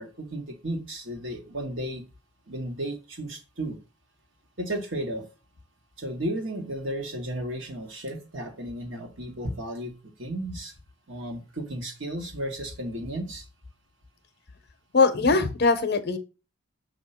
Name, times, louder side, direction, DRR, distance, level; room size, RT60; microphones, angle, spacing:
voice 1, 0.0-2.0 2.5-3.8 4.6-5.3 6.0-9.9 10.2-10.7 11.1-13.4, right 1 dB, 55° right, 4 dB, 1.3 m, -34 dB
voice 2, 14.9-16.2, left 4 dB, 45° left, 9 dB, 0.7 m, -21 dB
6.5 x 2.8 x 5.6 m, 0.31 s
head